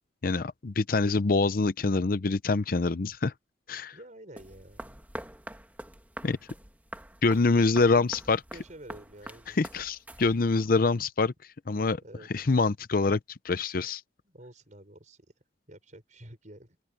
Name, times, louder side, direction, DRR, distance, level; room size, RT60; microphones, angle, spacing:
voice 1, 0.2-3.3 3.7-4.0 6.2-6.4 7.2-8.4 9.6-11.3 11.7-12.0 12.3-13.2 13.4-14.0, left 3 dB, 55° left, 0.6 m, -25 dB
voice 2, 3.9-5.0 7.3-9.6 12.0-12.6 14.2-15.3 15.7-16.8, right 1 dB, 45° right, 6.5 m, -49 dB
sound 1, 4.4-10.6, right 1 dB, 10° right, 2.4 m, -45 dB
open air
head